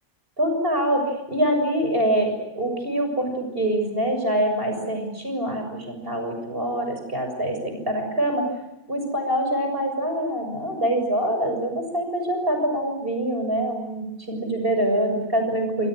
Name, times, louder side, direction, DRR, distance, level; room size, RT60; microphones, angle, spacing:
voice 1, 0.4-1.0 1.3-8.5 8.9-15.9, right 1 dB, 40° right, 4 dB, 7.3 m, -25 dB
28.5 x 26.0 x 6.6 m, 0.96 s
omnidirectional pair, 1.5 m